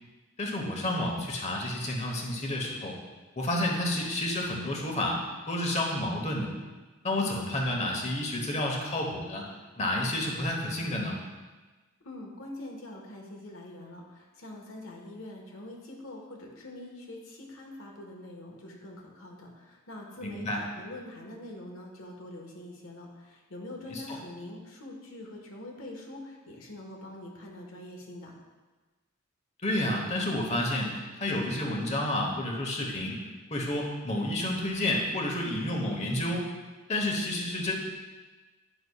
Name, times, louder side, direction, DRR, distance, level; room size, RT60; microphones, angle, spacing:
voice 1, 0.4-3.0 3.4-5.2 5.5-6.5 7.0-9.4 9.8-11.2 20.2-20.6 23.9-24.2 29.6-33.2 33.5-36.4 36.9-37.7, left 1 dB, 35° left, 0 dB, 1.0 m, -30 dB
voice 2, 12.0-28.3, left 1 dB, 80° left, 0 dB, 1.3 m, -44 dB
9.6 x 5.9 x 2.3 m, 1.3 s
head